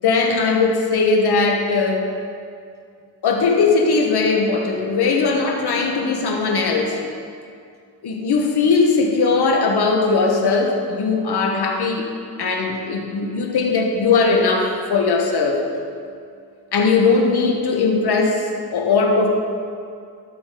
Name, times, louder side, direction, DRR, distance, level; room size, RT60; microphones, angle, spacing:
voice 1, 0.0-2.1 3.2-7.0 8.0-12.1 12.4-15.6 16.7-19.3, left 4 dB, 65° left, 0 dB, 1.5 m, -19 dB
12.5 x 6.5 x 5.1 m, 2.3 s
cardioid pair, 105°, 43 cm